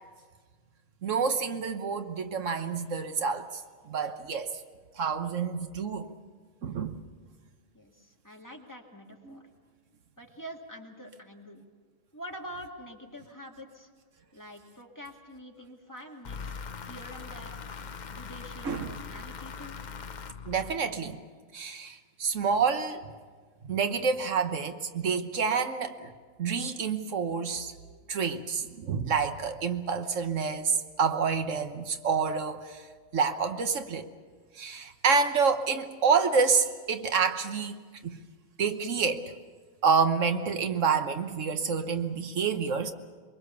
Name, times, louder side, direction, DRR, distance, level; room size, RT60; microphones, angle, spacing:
voice 1, 1.0-3.6 3.9-4.6 5.0-6.1 6.6-7.0 9.2-9.4 18.6-18.9 20.5-21.2 21.5-23.0 23.6-26.1 26.4-27.7 28.1-32.8 33.1-34.1 34.5-37.8 38.0-38.2 38.6-39.2 39.8-42.9, right 5 dB, 85° right, 8 dB, 1.5 m, -28 dB
voice 2, 7.7-9.4 10.2-11.6 12.1-13.9 14.3-16.6 16.9-17.6 18.1-19.8, equal, 15° left, 0 dB, 2.2 m, -46 dB
sound 1, 16.2-21.2, left 5 dB, 45° left, 0.8 m, -41 dB
23.0 x 23.0 x 7.0 m, 1.5 s
omnidirectional pair, 1.3 m